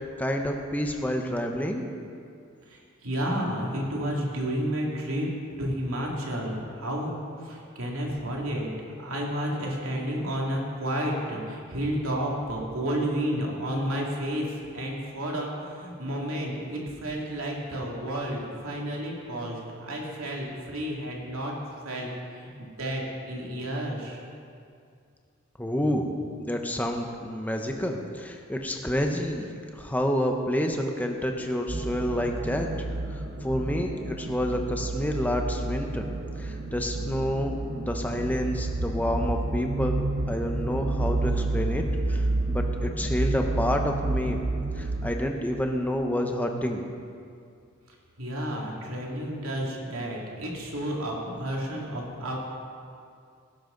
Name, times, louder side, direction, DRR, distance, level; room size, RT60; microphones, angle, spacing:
voice 1, 0.2-1.9 25.6-26.1 26.4-32.7 33.1-36.1 36.4-40.0 40.3-44.4 44.8-46.8, equal, 10° left, 3 dB, 0.9 m, -29 dB
voice 2, 2.7-5.3 5.6-8.7 9.0-14.5 14.7-21.5 21.8-24.2 48.2-52.4, equal, 85° right, -2 dB, 2.5 m, -31 dB
sound 1, 31.7-45.1, right 2 dB, 50° right, 0.8 m, -30 dB
18.5 x 11.0 x 3.9 m, 2.3 s
head